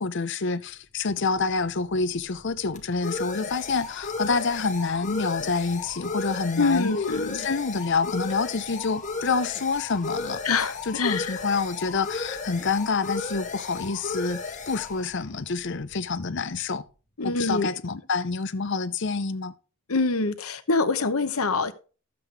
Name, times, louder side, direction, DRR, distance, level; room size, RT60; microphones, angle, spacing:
voice 1, 0.0-6.9 7.3-10.4 10.9-16.8 17.2-19.5, left 4 dB, 55° left, 0.7 m, -27 dB
sound 1, 1.2-16.5, left 3 dB, 35° left, 1.8 m, -35 dB
voice 2, 6.6-7.5 10.4-11.4 17.2-17.7 19.9-21.7, left 3 dB, 80° left, 1.0 m, -25 dB
13.0 x 7.7 x 3.4 m
head